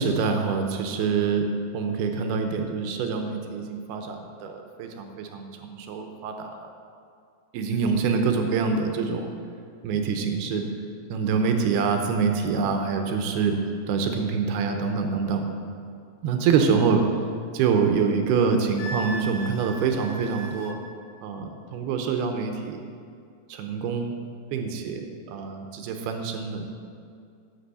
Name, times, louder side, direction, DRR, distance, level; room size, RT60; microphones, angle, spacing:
voice 1, 0.0-1.5 1.7-6.7 7.5-9.3 9.8-10.6 11.1-13.5 13.9-15.4 16.2-17.0 17.5-20.8 21.2-22.8 23.5-24.1 24.5-26.7, right 5 dB, 90° right, 5 dB, 2.9 m, -25 dB
Wind instrument woodwind instrument, 18.8-20.8, right 1 dB, 90° left, 2.9 m, -37 dB
11.5 x 6.3 x 8.1 m, 2.3 s
omnidirectional pair, 4.4 m